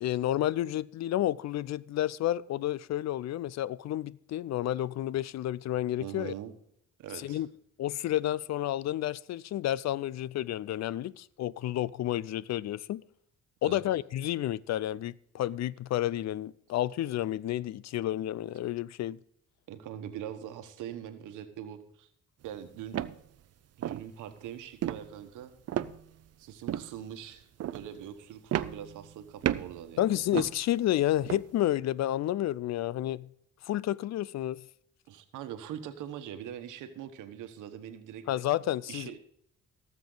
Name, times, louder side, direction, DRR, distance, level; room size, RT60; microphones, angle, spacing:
voice 1, 0.0-6.3 7.1-7.5 7.8-13.0 13.6-19.2 30.0-33.3 33.6-34.6 38.3-39.2, left 13 dB, 60° left, 0.5 m, -30 dB
voice 2, 6.0-6.5 7.0-7.4 13.6-13.8 19.7-22.1 22.4-23.0 23.8-25.5 26.4-30.1 35.1-38.3 38.9-39.2, right 10 dB, 90° right, 1.2 m, -42 dB
sound 1, 22.5-22.6 22.9-23.2 23.8-24.1 24.8-25.1 25.7-26.3 26.7-26.9 27.6-27.9 28.5-29.1 29.4-29.8 30.3-30.6 31.2-31.5, right 11 dB, 55° right, 0.6 m, -32 dB
18.0 x 7.5 x 3.9 m
cardioid pair, 90°, 30 cm